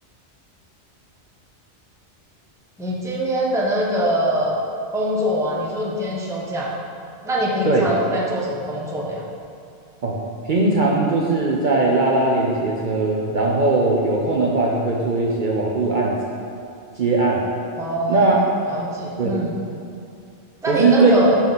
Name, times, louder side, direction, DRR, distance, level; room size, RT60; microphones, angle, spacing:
voice 1, 2.8-4.6 4.9-6.7 7.2-9.2 17.8-18.4 18.7-19.6 20.6-21.4, equal, 5° right, -4 dB, 0.7 m, -23 dB
voice 2, 10.4-16.2 17.0-17.4 18.1-18.4 19.2-19.4 20.7-21.3, right 3 dB, 50° right, -3 dB, 0.7 m, -19 dB
6.3 x 5.5 x 3.9 m, 2.5 s
omnidirectional pair, 1.2 m